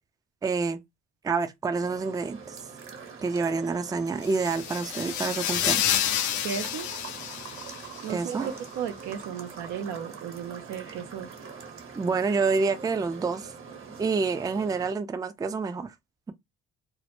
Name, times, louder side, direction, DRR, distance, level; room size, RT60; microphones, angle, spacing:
voice 1, 0.4-0.8 1.2-2.6 3.2-6.1 8.1-8.5 12.0-13.5 14.0-15.9, right 4 dB, 15° right, 0.3 m, -28 dB
sound 1, 1.7-14.9, right 5 dB, 45° right, 0.9 m, -44 dB
sound 2, 4.2-8.1, left 11 dB, 70° left, 0.5 m, -29 dB
voice 2, 6.4-6.9 8.0-8.4 8.8-11.3, right 8 dB, 85° right, 0.6 m, -35 dB
2.1 x 2.0 x 2.9 m
supercardioid pair, 55°, 29 cm